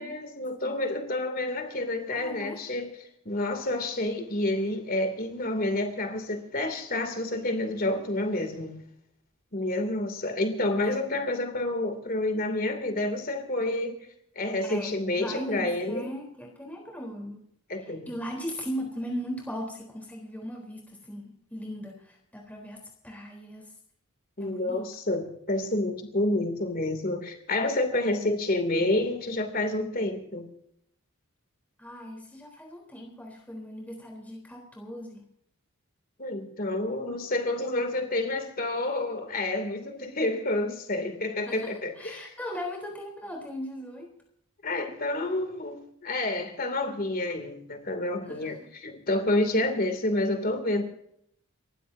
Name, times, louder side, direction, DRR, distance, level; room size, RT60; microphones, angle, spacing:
voice 1, 0.0-2.9 3.2-8.8 9.5-14.0 14.4-16.1 17.7-18.1 24.4-30.5 36.2-42.3 44.6-50.8, left 2 dB, 40° left, 6 dB, 2.8 m, -29 dB
voice 2, 2.1-2.6 10.8-11.0 14.6-17.4 17.8-23.7 24.4-24.8 28.0-28.3 31.8-35.2 41.5-44.1 48.3-48.5, equal, 5° left, -1 dB, 3.8 m, -38 dB
30.0 x 15.0 x 2.8 m, 0.71 s
head